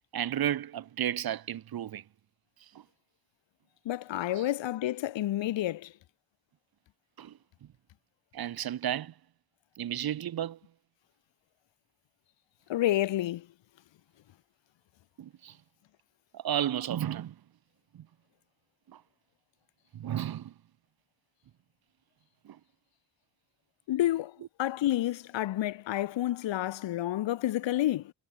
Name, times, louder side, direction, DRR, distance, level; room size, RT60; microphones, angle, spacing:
voice 1, 0.1-2.0 4.3-4.5 7.2-7.3 8.3-9.1 9.8-10.6 15.2-15.5 16.3-17.3 17.9-18.1 18.9-19.0 19.9-20.5 22.5-22.6, right 11 dB, 55° right, 0.6 m, -33 dB
voice 2, 3.9-5.9 12.7-13.4 23.9-24.3 24.6-28.1, left 14 dB, 75° left, 0.7 m, -29 dB
cardioid pair, 70°, 45 cm